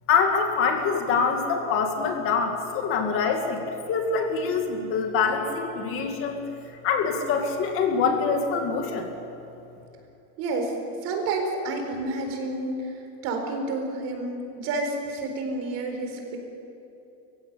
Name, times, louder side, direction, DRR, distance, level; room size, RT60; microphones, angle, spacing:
voice 1, 0.1-3.6 3.9-6.4 6.8-9.1, left 5 dB, 40° left, 4 dB, 2.3 m, -25 dB
voice 2, 10.4-10.7 11.0-12.9 13.2-16.4, right 2 dB, 50° right, 3 dB, 4.3 m, -29 dB
24.0 x 16.0 x 8.5 m, 2.8 s
cardioid pair, 170°, 33 cm